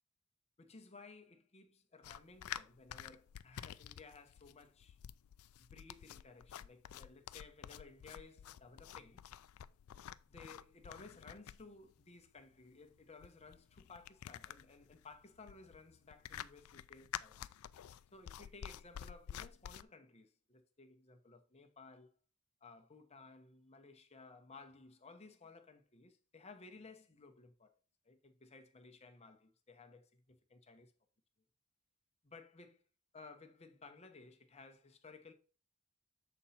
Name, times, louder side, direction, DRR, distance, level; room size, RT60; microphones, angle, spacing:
voice 1, 0.6-5.0 5.6-9.2 10.3-17.4 18.1-22.1 22.6-27.7 28.0-30.9 32.2-32.8 33.1-35.3, left 3 dB, 30° left, 0.9 m, -57 dB
sound 1, 2.0-19.8, left 10 dB, 85° left, 0.3 m, -50 dB
7.0 x 4.5 x 4.2 m
head